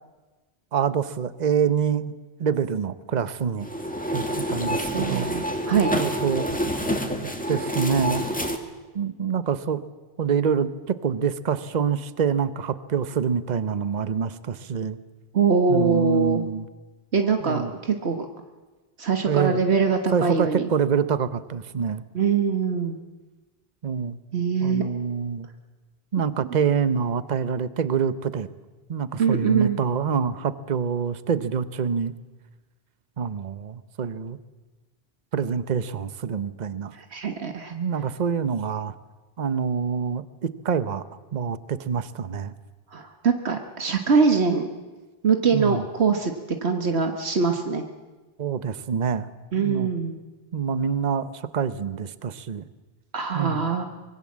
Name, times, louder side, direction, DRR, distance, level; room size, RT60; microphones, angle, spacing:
voice 1, 0.7-2.1 2.4-3.7 4.1-5.5 5.9-6.5 7.5-8.3 8.9-9.8 10.2-15.0 15.7-16.7 17.4-17.7 19.3-19.6 20.1-22.0 23.8-24.2 24.6-25.5 26.1-28.5 28.9-32.1 33.2-34.4 35.3-36.9 37.7-38.9 39.4-42.5 45.5-45.8 48.4-49.3 49.6-49.9 50.5-52.6 53.3-53.7, right 7 dB, 45° right, 13 dB, 1.0 m, -26 dB
sound 1, 3.6-8.6, equal, 10° left, 1.9 m, -27 dB
voice 2, 4.9-5.9 15.3-16.4 17.1-18.3 19.0-20.6 22.2-23.0 24.3-24.8 29.2-29.8 36.9-37.7 42.9-44.6 45.2-46.3 46.6-47.8 49.5-50.2 53.1-53.8, right 5 dB, 80° right, 5 dB, 1.7 m, -23 dB
24.5 x 21.5 x 7.5 m, 1.2 s
omnidirectional pair, 1.1 m